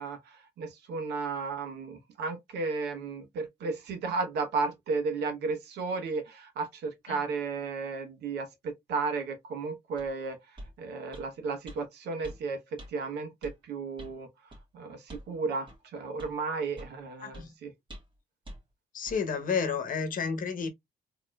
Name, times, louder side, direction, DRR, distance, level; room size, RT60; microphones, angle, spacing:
voice 1, 0.0-17.7, right 4 dB, 80° right, 1.1 m, -34 dB
Footstep Metal, 10.0-10.1 10.6-10.7 11.1-11.3 11.7-11.8 12.2-12.4 12.8-12.9 13.4-13.6 14.0-14.2 14.5-14.6 15.1-15.3 15.7-15.8 16.2-16.3 16.8-17.0 17.3-17.5 17.9-18.2 18.5-18.6 19.1-19.2, right 1 dB, 30° right, 1.5 m, -45 dB
voice 2, 17.2-17.5 18.9-20.7, left 5 dB, 55° left, 1.0 m, -31 dB
4.2 x 2.9 x 2.3 m
cardioid pair, 85°, 17 cm